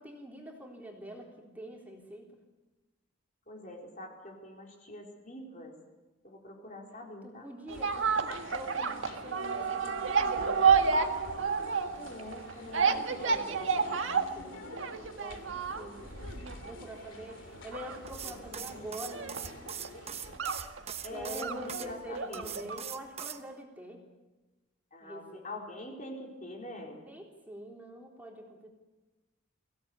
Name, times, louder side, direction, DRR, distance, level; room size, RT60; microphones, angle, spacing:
voice 1, 0.0-2.3 7.2-10.7 12.7-14.6 15.0-19.4 21.1-24.0 25.0-25.5 27.1-28.7, equal, 10° right, -1 dB, 3.6 m, -45 dB
voice 2, 3.5-5.7 6.2-7.5 12.0-13.2 21.0-22.5 24.9-27.0, left 1 dB, 40° left, 0 dB, 4.3 m, -44 dB
sound 1, 7.7-20.4, left 2 dB, 70° left, 2.8 m, -49 dB
sound 2, 7.7-22.9 23.2-23.3, right 5 dB, 75° right, 1.7 m, -31 dB
sound 3, 18.1-21.9 22.3-23.4, right 8 dB, 30° right, 1.2 m, -41 dB
24.0 x 17.0 x 8.6 m, 1.2 s
head